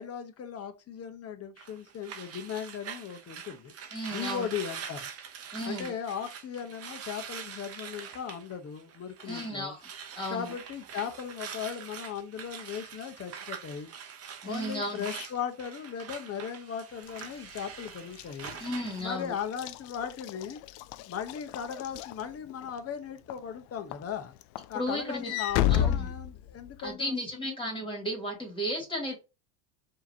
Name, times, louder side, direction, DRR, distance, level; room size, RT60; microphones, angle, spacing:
voice 1, 0.0-3.7 4.1-5.1 5.6-9.8 10.3-13.9 14.4-18.6 19.0-20.6 21.1-24.3 24.7-27.6, left 8 dB, 35° left, 0.9 m, -37 dB
sound 1, 1.6-9.5 9.8-19.0, right 7 dB, 35° right, 0.7 m, -44 dB
voice 2, 3.9-4.5 5.5-5.9 9.2-9.8 10.1-10.5 14.4-15.1 18.6-19.3 24.7-25.4 25.7-26.1 26.8-29.2, equal, 10° left, 2.4 m, -34 dB
Walk footsteps / Slam, 17.1-22.8 23.3-23.6 23.9-26.9, left 11 dB, 65° left, 0.5 m, -33 dB
4.7 x 3.0 x 2.8 m
supercardioid pair, 110°, 43 cm